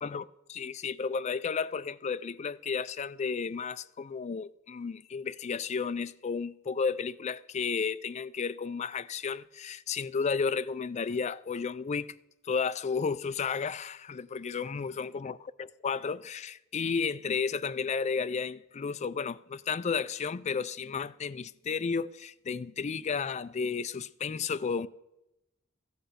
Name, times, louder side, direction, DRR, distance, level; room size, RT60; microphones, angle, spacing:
voice 1, 0.0-12.2 12.4-24.9, left 5 dB, 35° left, 0.3 m, -33 dB
14.0 x 8.0 x 6.6 m
head